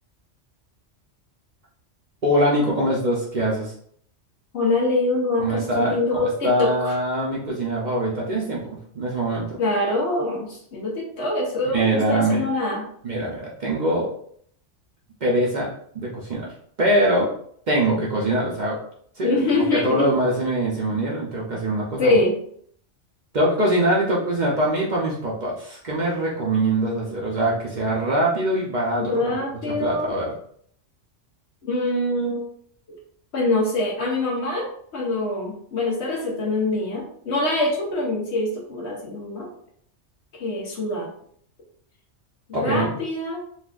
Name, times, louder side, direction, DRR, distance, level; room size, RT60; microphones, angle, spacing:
voice 1, 2.2-3.7 5.4-9.6 11.6-12.4 13.0-14.1 15.2-15.7 15.9-16.5 16.8-17.3 17.7-18.8 19.2-22.2 23.3-29.3 29.7-30.3 42.5-42.9, right 1 dB, 45° right, -4 dB, 0.7 m, -23 dB
voice 2, 4.5-7.0 9.6-12.8 19.2-20.1 22.0-22.3 29.0-30.1 31.6-32.4 33.3-39.5 40.3-41.1 42.5-43.4, left 2 dB, 65° left, -2 dB, 1.2 m, -24 dB
4.0 x 2.4 x 2.4 m, 0.63 s
omnidirectional pair, 1.2 m